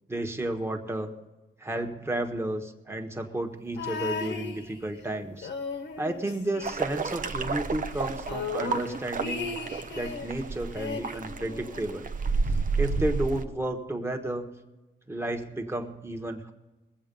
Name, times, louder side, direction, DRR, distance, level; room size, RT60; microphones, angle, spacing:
voice 1, 0.1-1.1 1.6-5.5 6.0-9.5 9.9-12.1 12.8-14.5 15.1-16.5, right 1 dB, 15° right, 4 dB, 1.3 m, -32 dB
sound 1, 3.8-5.0 5.4-7.3 7.5-7.6 7.9-10.3 10.7-12.0 12.9-13.0, left 5 dB, 75° left, 1.5 m, -36 dB
sound 2, 6.6-13.4, right 4 dB, 45° right, 0.7 m, -31 dB
21.0 x 8.0 x 5.3 m, 1.1 s
wide cardioid pair, 125°, 19 cm